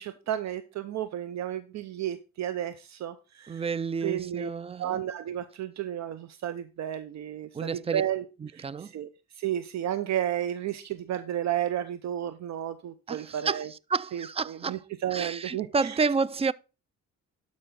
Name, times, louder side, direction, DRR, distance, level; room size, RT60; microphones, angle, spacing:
voice 1, 0.0-3.6 4.0-4.5 4.8-8.2 8.5-9.1 9.4-13.7 14.1-16.0, right 11 dB, 65° right, 0.7 m, -32 dB
voice 2, 3.5-5.0 7.5-8.0 8.4-8.9 13.1-14.8 15.1-16.5, right 5 dB, 20° right, 0.4 m, -30 dB
12.0 x 5.4 x 3.8 m
cardioid pair, 90°, 30 cm